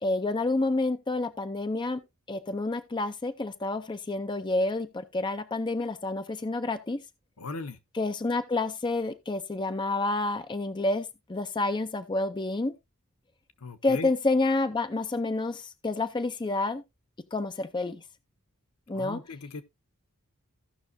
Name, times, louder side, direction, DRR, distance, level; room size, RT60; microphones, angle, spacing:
voice 1, 0.0-2.0 2.3-7.0 7.9-12.7 13.8-16.8 17.3-18.0 18.9-19.2, left 2 dB, 20° left, 0.5 m, -29 dB
voice 2, 7.4-7.8 13.6-14.1 18.9-19.6, left 3 dB, 80° left, 0.9 m, -38 dB
16.0 x 5.9 x 2.6 m
head